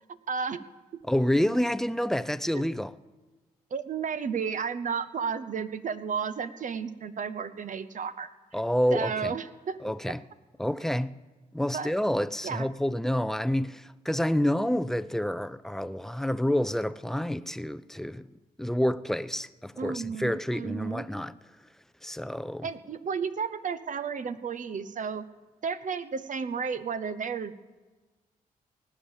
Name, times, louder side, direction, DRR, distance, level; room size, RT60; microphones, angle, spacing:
voice 1, 0.3-0.6 0.9-1.0 2.5-2.6 3.7-8.6 8.9-9.8 11.7-11.9 12.4-12.7 19.8-21.0 22.6-25.3 25.6-27.5, right 6 dB, 55° right, 0.8 m, -33 dB
voice 2, 1.0-2.9 8.5-9.3 9.8-10.2 10.6-11.1 11.5-18.3 18.6-21.3 22.0-22.7, equal, ahead, 0.5 m, -28 dB
18.0 x 8.7 x 7.3 m
cardioid pair, 65°, 16 cm